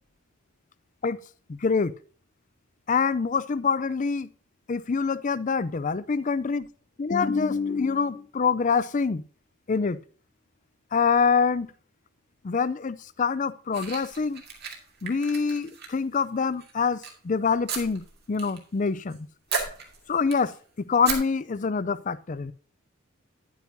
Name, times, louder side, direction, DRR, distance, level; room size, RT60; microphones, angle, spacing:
voice 1, 1.5-1.9 2.9-4.3 4.7-6.7 7.0-9.2 9.7-10.0 10.9-11.7 12.4-14.4 15.0-19.2 20.1-22.5, left 5 dB, 35° left, 16 dB, 0.4 m, -25 dB
sound 1, 13.7-16.2 16.6-17.1 17.7-18.6 18.9-19.2 19.5-20.6 21.0-21.2, right 5 dB, 50° right, 2.1 m, -34 dB
9.8 x 9.2 x 2.7 m, 0.42 s
head